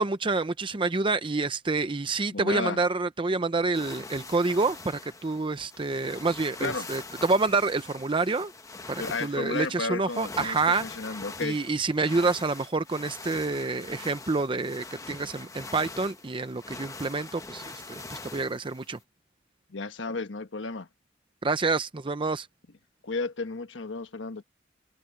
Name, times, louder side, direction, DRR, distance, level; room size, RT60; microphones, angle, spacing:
voice 1, 0.0-8.5 8.9-10.8 11.4-19.0 21.4-22.5, right 3 dB, 30° right, 0.6 m, -28 dB
voice 2, 2.3-2.8 6.6-6.9 9.0-11.6 19.7-20.9 23.0-24.4, left 3 dB, 75° left, 1.2 m, -33 dB
sound 1, 3.7-19.0, left 3 dB, 20° left, 1.0 m, -43 dB
head